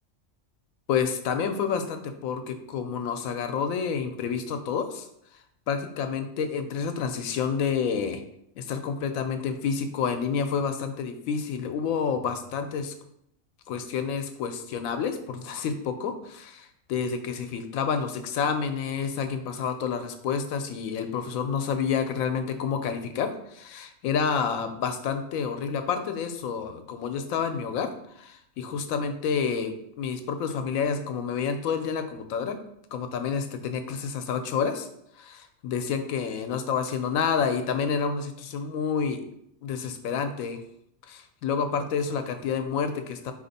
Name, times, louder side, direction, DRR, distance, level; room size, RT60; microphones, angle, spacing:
voice 1, 0.9-5.1 5.7-8.2 8.6-12.9 13.7-27.9 28.2-32.6 32.9-34.9 35.2-39.2 39.6-40.6 41.1-43.3, left 6 dB, 85° left, 7 dB, 1.0 m, -29 dB
4.2 x 3.0 x 4.0 m, 0.76 s
omnidirectional pair, 1.4 m